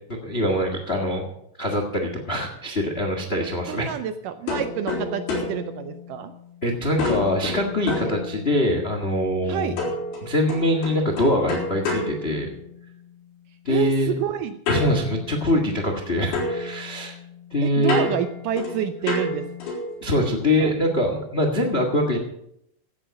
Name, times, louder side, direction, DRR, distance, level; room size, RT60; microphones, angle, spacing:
voice 1, 0.2-1.2 1.6-3.9 6.6-9.8 10.2-12.5 13.6-14.1 14.7-17.1 17.5-18.1 20.0-22.2, left 1 dB, 45° left, 4 dB, 0.7 m, -23 dB
voice 2, 3.4-6.3 9.5-9.8 13.7-14.6 17.6-19.5 20.6-20.7, right 10 dB, 80° right, 10 dB, 2.0 m, -28 dB
sound 1, 4.5-6.6 7.0-8.8 9.8-13.0 14.7-16.0 16.3-20.0, left 2 dB, 85° left, 6.0 m, -30 dB
16.0 x 9.0 x 6.4 m, 0.75 s
omnidirectional pair, 4.3 m